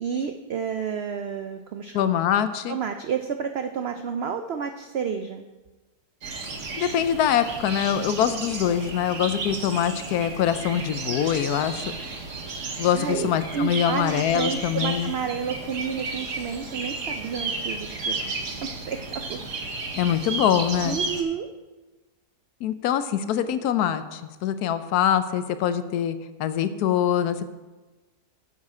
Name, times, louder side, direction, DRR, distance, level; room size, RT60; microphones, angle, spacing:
voice 1, 0.0-2.0 2.7-5.4 12.9-19.0 19.3-19.4 20.8-21.5, right 6 dB, 85° right, 7 dB, 0.5 m, -30 dB
voice 2, 1.9-2.8 6.8-11.8 12.8-15.1 20.0-21.0 22.6-27.5, left 9 dB, 80° left, 12 dB, 1.1 m, -24 dB
sound 1, 6.2-21.2, right 3 dB, 55° right, 1.4 m, -33 dB
8.5 x 7.3 x 4.8 m, 1.2 s
omnidirectional pair, 1.7 m